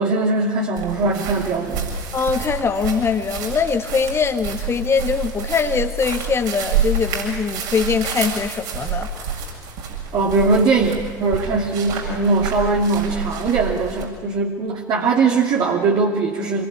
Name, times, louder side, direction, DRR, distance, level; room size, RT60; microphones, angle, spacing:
voice 1, 0.0-1.9 10.1-16.6, right 3 dB, 45° right, 0 dB, 2.7 m, -20 dB
sound 1, 0.8-14.0, right 6 dB, 60° right, 7.1 m, -28 dB
voice 2, 2.1-9.3, left 5 dB, 25° left, 7 dB, 1.7 m, -22 dB
27.0 x 22.0 x 9.8 m, 1.5 s
figure-of-eight pair, 65°, 10 cm